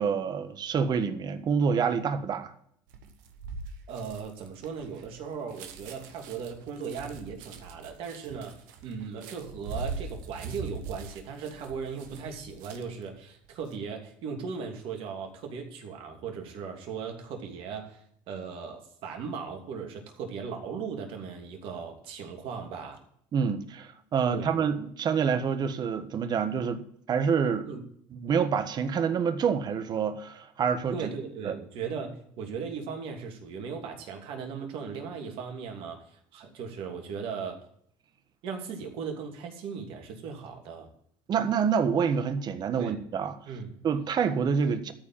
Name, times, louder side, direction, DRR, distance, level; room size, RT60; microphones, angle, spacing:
voice 1, 0.0-2.5 23.3-27.7 28.2-31.1 31.4-31.5 41.3-43.4 43.8-44.9, right 6 dB, 45° right, 1.4 m, -27 dB
sound 1, 2.9-13.1 13.4-13.8, right 4 dB, 85° right, 1.4 m, -42 dB
voice 2, 3.9-23.0 24.3-24.5 27.7-27.8 30.9-36.1 36.3-37.6 38.4-40.9 42.8-43.0 43.5-43.7, right 6 dB, 65° right, 2.7 m, -38 dB
13.5 x 4.8 x 8.9 m
supercardioid pair, 90°, 10 cm